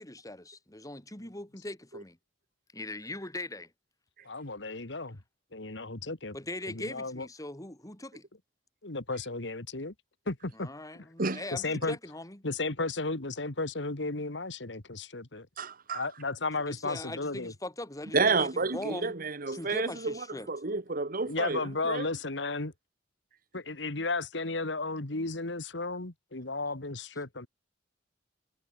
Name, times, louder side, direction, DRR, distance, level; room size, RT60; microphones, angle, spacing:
voice 1, 0.0-2.2 2.7-3.7 6.3-8.3 10.5-12.4 16.7-19.1 19.5-20.5, left 2 dB, 20° left, 3.5 m, -41 dB
voice 2, 4.2-5.2 5.5-6.4 6.7-7.3 8.8-9.9 10.3-11.1 11.5-12.0 12.4-15.5 15.9-17.5 21.2-22.7 23.5-27.5, left 3 dB, 75° left, 2.1 m, -34 dB
voice 3, 15.6-16.1 18.1-20.1 20.5-21.6 21.9-22.1, right 4 dB, 50° right, 1.4 m, -29 dB
head